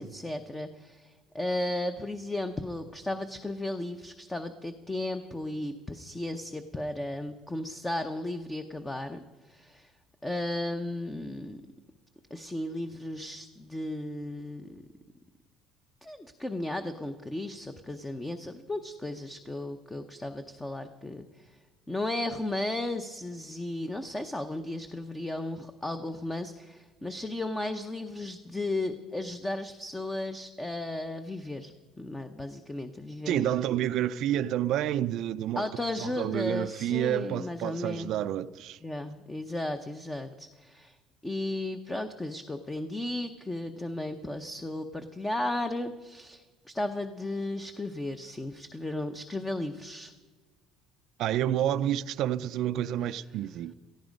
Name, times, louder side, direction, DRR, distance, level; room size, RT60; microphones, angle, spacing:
voice 1, 0.0-9.9 10.2-11.6 12.3-14.7 16.0-21.5 21.9-31.7 32.0-33.6 35.6-38.1 38.8-41.0 41.2-46.4 46.7-50.1, left 1 dB, 10° left, 0.7 m, -35 dB
voice 2, 33.3-35.7 36.0-38.8 51.2-53.7, right 11 dB, 60° right, 0.5 m, -29 dB
18.0 x 14.5 x 5.2 m
cardioid pair, 145°, 0 cm